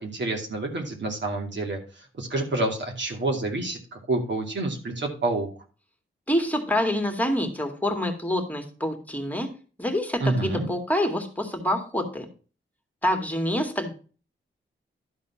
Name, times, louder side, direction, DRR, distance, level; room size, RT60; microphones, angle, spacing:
voice 1, 0.0-5.5 10.2-10.7, right 2 dB, 65° right, 1 dB, 2.5 m, -28 dB
voice 2, 6.3-9.5 9.8-12.3 13.0-13.9, left 1 dB, 10° left, 4 dB, 2.1 m, -26 dB
12.0 x 4.1 x 5.7 m, 0.37 s
cardioid pair, 65°, 20 cm